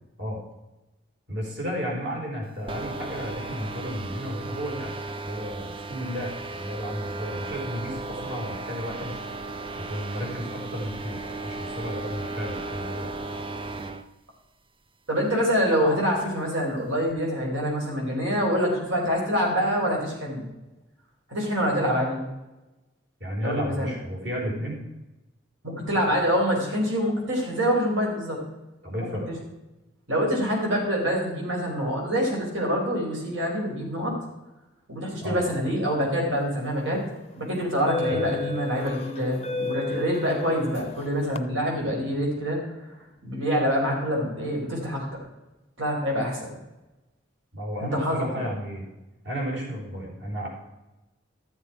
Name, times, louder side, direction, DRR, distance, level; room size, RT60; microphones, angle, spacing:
voice 1, 1.3-4.9 5.2-9.2 9.8-13.1 23.2-24.8 28.8-29.3 35.2-35.4 38.1-38.3 47.5-48.8 49.2-50.5, equal, 65° right, -2 dB, 3.8 m, -33 dB
sound 1, 2.7-14.1, right 3 dB, 25° right, 0.5 m, -35 dB
voice 2, 15.1-20.5 21.3-22.2 23.4-23.9 25.6-28.4 28.9-29.1 30.1-34.1 34.9-37.0 37.3-42.6 43.2-45.0 45.8-46.5 47.8-48.2, equal, 90° right, -1 dB, 4.2 m, -25 dB
sound 2, 36.6-36.8 37.6-41.4, left 3 dB, 30° left, 0.5 m, -33 dB
13.0 x 7.4 x 4.8 m, 1.0 s
head